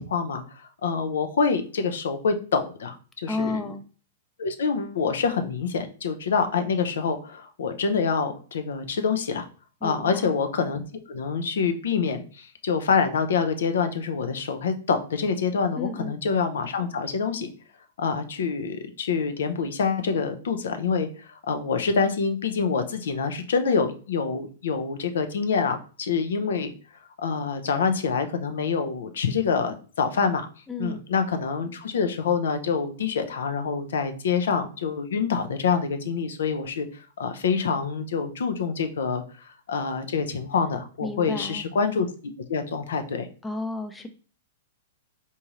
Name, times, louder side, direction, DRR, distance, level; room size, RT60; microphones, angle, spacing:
voice 1, 0.0-3.0 3.2-3.7 4.4-9.5 9.8-17.5 18.0-26.7 27.2-30.5 30.8-43.3, left 5 dB, 80° left, 7 dB, 0.5 m, -26 dB
voice 2, 3.3-3.8 9.8-10.3 15.8-16.2 30.7-31.0 41.0-41.7 43.4-44.1, left 3 dB, 10° left, 6 dB, 0.4 m, -32 dB
3.6 x 2.7 x 2.9 m, 0.39 s
hypercardioid pair, 135°, 0 cm